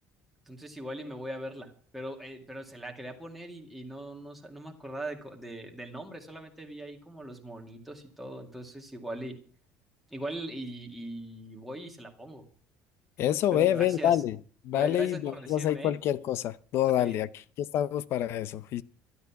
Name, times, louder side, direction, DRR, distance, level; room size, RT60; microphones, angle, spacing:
voice 1, 0.5-9.4 10.1-12.4 13.5-14.2 14.7-16.0 17.0-17.2, right 1 dB, ahead, 2.1 m, -40 dB
voice 2, 13.2-14.4 14.6-17.3 17.7-18.8, left 11 dB, 45° left, 0.6 m, -27 dB
12.5 x 11.5 x 5.9 m
cardioid pair, 165°, 6 cm